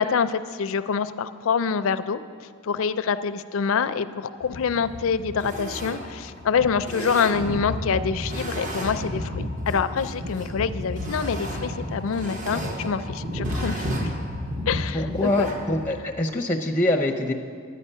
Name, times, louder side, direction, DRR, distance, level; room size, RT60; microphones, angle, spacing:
voice 1, 0.0-2.2 2.6-14.1 14.7-15.5, left 6 dB, 65° left, 13 dB, 0.4 m, -26 dB
sound 1, 4.4-16.0, equal, 35° right, 0.9 m, -32 dB
voice 2, 14.9-17.3, left 1 dB, 10° left, 1 dB, 0.6 m, -24 dB
10.0 x 9.2 x 5.5 m, 2.1 s
head